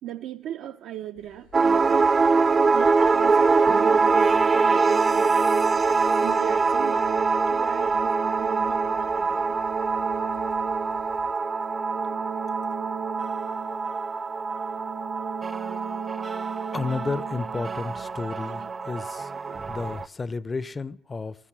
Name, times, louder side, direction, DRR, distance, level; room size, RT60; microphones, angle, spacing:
voice 1, 0.0-2.4 2.7-5.4 6.1-7.1 7.5-9.6 18.4-18.7 19.4-19.6 20.3-20.4, right 12 dB, 75° right, 0.6 m, -39 dB
sound 1, 1.1-11.3, left 6 dB, 85° left, 6.3 m, -54 dB
sound 2, 1.5-20.1, right 4 dB, 30° right, 0.5 m, -24 dB
sound 3, 3.7-18.7, right 8 dB, 55° right, 0.9 m, -38 dB
voice 2, 16.7-19.3 19.7-21.4, left 4 dB, 25° left, 0.5 m, -32 dB
15.0 x 13.5 x 7.4 m
cardioid pair, 95°, 0 cm